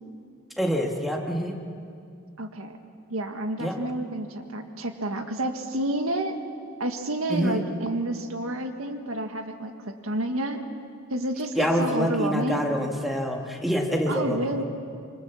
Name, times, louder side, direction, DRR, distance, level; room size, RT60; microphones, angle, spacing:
voice 1, 0.6-1.6 3.6-3.8 7.3-7.6 11.5-14.6, equal, ahead, 1 dB, 2.0 m, -26 dB
voice 2, 2.4-2.8 3.1-6.4 6.8-10.6 11.1-12.7 14.1-14.6, right 1 dB, 85° right, 6 dB, 1.8 m, -29 dB
26.5 x 25.0 x 7.2 m, 2.3 s
head